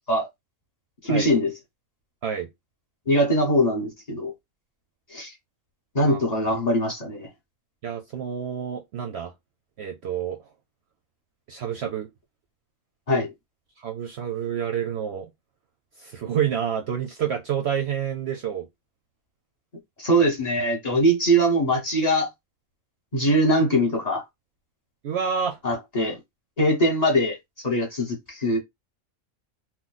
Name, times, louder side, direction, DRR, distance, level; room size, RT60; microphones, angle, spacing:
voice 1, 1.0-1.5 3.1-4.3 5.1-5.3 5.9-7.3 13.1-13.3 20.0-22.3 23.1-24.2 25.6-26.2 26.6-27.4 27.6-28.6, equal, 30° left, 1.0 m, -22 dB
voice 2, 7.8-9.3 9.8-10.4 11.5-12.1 13.8-15.3 16.0-18.7 25.0-25.6, right 8 dB, 65° right, 0.7 m, -28 dB
3.0 x 2.1 x 3.9 m
omnidirectional pair, 1.5 m